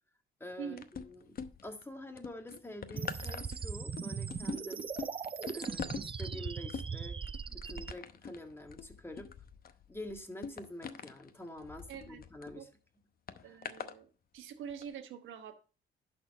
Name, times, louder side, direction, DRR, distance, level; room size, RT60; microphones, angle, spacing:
voice 1, 0.4-4.8 5.5-7.2 7.5-9.3 9.9-12.7 13.4-13.6, left 1 dB, 10° left, 5 dB, 1.7 m, -47 dB
sound 1, 0.8-1.8 2.2-12.5 13.3-14.0 14.7-14.8, left 6 dB, 50° left, 0.8 m, -44 dB
sound 2, 3.0-7.9, right 6 dB, 25° right, 0.5 m, -39 dB
voice 2, 11.9-12.2 12.6-12.7 13.4-14.1 14.3-15.6, right 7 dB, 85° right, 6 dB, 1.2 m, -44 dB
11.5 x 4.3 x 5.3 m, 0.36 s
cardioid pair, 90°, 20 cm